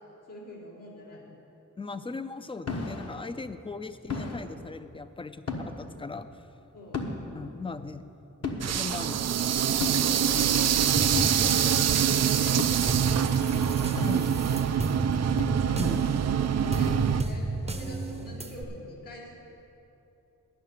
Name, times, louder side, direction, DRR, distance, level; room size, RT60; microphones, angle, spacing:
voice 1, 0.3-1.3 3.2-3.3 6.7-7.0 8.8-9.0 9.8-10.8 11.2-19.3, left 1 dB, 80° left, -6 dB, 3.2 m, -46 dB
voice 2, 1.8-6.3 7.3-8.0 8.7-9.4 11.5-11.6 14.0-14.3 15.8-16.1, left 4 dB, 15° left, 11 dB, 0.5 m, -38 dB
sound 1, 2.7-3.2 4.1-4.4 5.5-5.8 6.9-7.3 8.4-8.6 9.8-10.1 11.2-11.4 12.6-12.7 14.0-14.3 15.4-15.8 16.9-17.3, left 3 dB, 55° left, 1.2 m, -33 dB
sound 2, 8.6-17.2, right 9 dB, 55° right, 0.4 m, -25 dB
sound 3, 11.0-18.6, right 2 dB, 20° right, 0.7 m, -33 dB
11.5 x 6.4 x 9.4 m, 3.0 s
wide cardioid pair, 115°, 31 cm